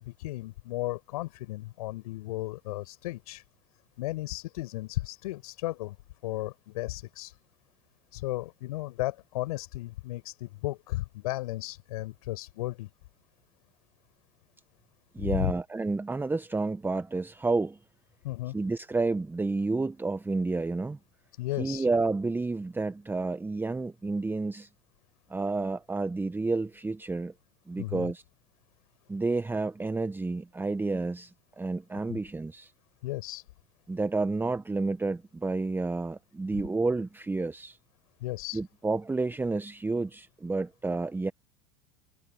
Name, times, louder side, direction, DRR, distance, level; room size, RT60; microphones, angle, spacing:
voice 1, 0.0-3.4 4.0-6.0 6.2-7.4 8.1-12.9 15.2-15.5 18.2-18.6 21.4-21.9 27.8-28.1 32.1-32.2 33.0-33.5 38.2-38.6, left 18 dB, 65° left, 7.0 m, -34 dB
voice 2, 15.1-17.8 18.5-21.0 21.6-24.7 25.3-27.3 27.7-28.2 29.1-32.7 33.9-37.8 38.5-41.3, right 3 dB, 10° right, 1.2 m, -30 dB
figure-of-eight pair, 85°, 21 cm